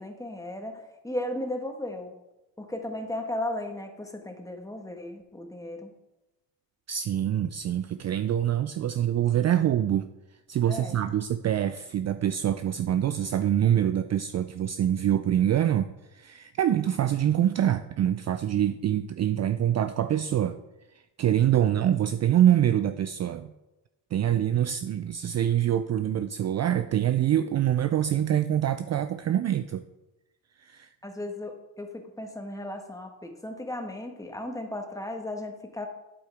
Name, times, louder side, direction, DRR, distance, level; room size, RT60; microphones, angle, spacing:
voice 1, 0.0-2.1 2.6-5.9 10.7-11.0 31.0-35.9, left 1 dB, 10° left, 4 dB, 1.4 m, -35 dB
voice 2, 6.9-10.1 10.5-20.6 21.2-23.5 24.1-29.8 30.6-30.9, right 10 dB, 40° right, 10 dB, 0.4 m, -25 dB
8.4 x 8.4 x 3.4 m, 0.98 s
cardioid pair, 85°, 41 cm